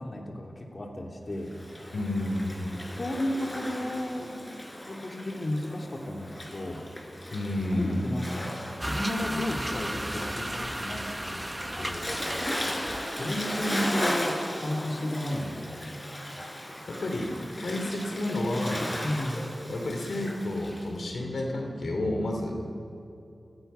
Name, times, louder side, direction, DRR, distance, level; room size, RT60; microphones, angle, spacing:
voice 1, 0.0-1.9 2.9-6.8 7.7-11.5 11.8-12.2 13.2-16.0 19.0-19.5, left 1 dB, 50° left, 0 dB, 2.9 m, -33 dB
Waves surf, 1.4-20.9, left 1 dB, 25° left, 5.1 m, -37 dB
voice 2, 1.9-2.9 7.3-8.0 13.0-13.2 17.0-18.9 19.7-22.6, left 1 dB, 85° left, 2 dB, 3.3 m, -30 dB
sound 1, 8.8-14.4, right 1 dB, 15° right, 1.0 m, -35 dB
30.0 x 18.5 x 5.7 m, 2.7 s
cardioid pair, 50°, 0 cm